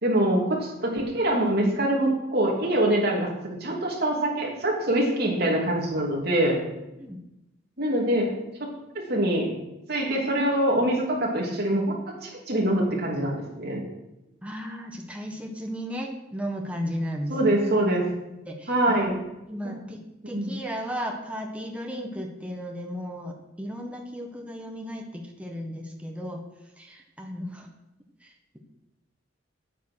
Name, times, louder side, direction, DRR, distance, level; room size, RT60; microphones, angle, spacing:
voice 1, 0.0-6.6 7.8-8.3 8.6-8.7 9.1-9.5 9.9-12.0 12.2-13.8 17.3-18.1 18.7-19.2 19.6-19.8 20.3-20.5, right 1 dB, 50° right, -2 dB, 3.0 m, -24 dB
voice 2, 14.4-17.5 18.5-19.1 19.5-20.0 20.3-26.4 26.8-27.7 28.2-28.6, equal, 5° right, 1 dB, 1.4 m, -35 dB
9.2 x 8.4 x 6.4 m, 0.93 s
head